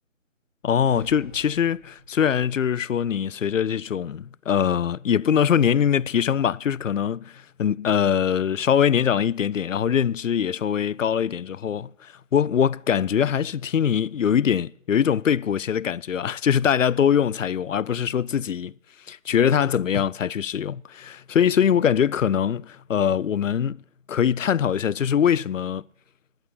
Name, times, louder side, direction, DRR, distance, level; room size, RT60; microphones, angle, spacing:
voice 1, 0.6-18.7 19.1-23.8 24.1-25.8, left 8 dB, 75° left, 0.5 m, -22 dB
sound 1, 0.9-2.5, right 2 dB, 40° right, 1.6 m, -45 dB
11.5 x 9.1 x 9.2 m
figure-of-eight pair, 165°, 39 cm